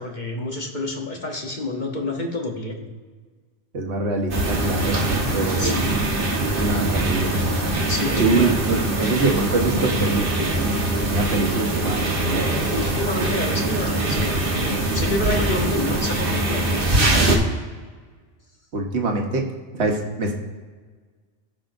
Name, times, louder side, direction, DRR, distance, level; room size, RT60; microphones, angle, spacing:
voice 1, 0.0-2.9 5.6-5.9 7.9-8.5 12.7-16.9, left 2 dB, 40° left, 2 dB, 1.0 m, -28 dB
voice 2, 3.7-5.7 6.6-7.4 8.2-10.7 11.0-12.2 18.7-19.4 19.7-20.3, right 2 dB, 65° right, 2 dB, 1.4 m, -24 dB
sound 1, 4.3-17.4, right 2 dB, 50° right, 1.3 m, -22 dB
15.0 x 5.6 x 2.6 m, 1.5 s
omnidirectional pair, 1.2 m